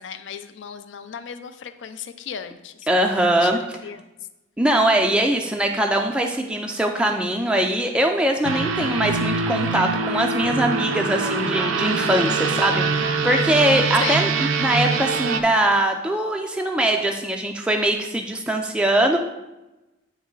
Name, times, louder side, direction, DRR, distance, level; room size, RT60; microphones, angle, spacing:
voice 1, 0.0-3.5 3.8-4.0 14.0-14.2, left 7 dB, 65° left, 10 dB, 0.4 m, -35 dB
voice 2, 2.9-3.6 4.6-14.3 14.6-19.2, right 1 dB, 5° right, 2 dB, 0.3 m, -21 dB
sound 1, 8.4-15.4, right 4 dB, 80° right, 0.5 m, -24 dB
8.8 x 3.1 x 3.8 m, 1.0 s
head